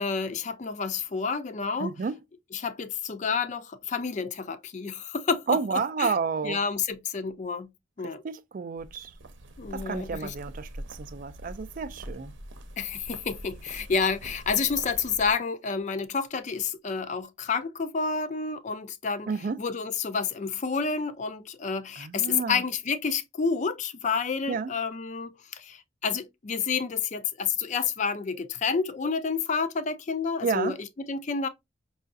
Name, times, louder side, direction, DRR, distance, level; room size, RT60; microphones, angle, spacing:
voice 1, 0.0-1.9 2.5-6.1 6.4-7.7 8.0-8.2 9.6-10.3 12.8-19.3 19.6-31.5, left 5 dB, 40° left, 0.4 m, -29 dB
voice 2, 1.8-2.2 5.5-6.6 8.0-9.1 9.7-12.3 19.3-19.6 22.0-22.6 24.5-24.7 30.4-30.8, right 5 dB, 45° right, 0.3 m, -30 dB
sound 1, 8.8-15.3, right 1 dB, 80° right, 0.7 m, -44 dB
5.5 x 2.4 x 2.5 m
head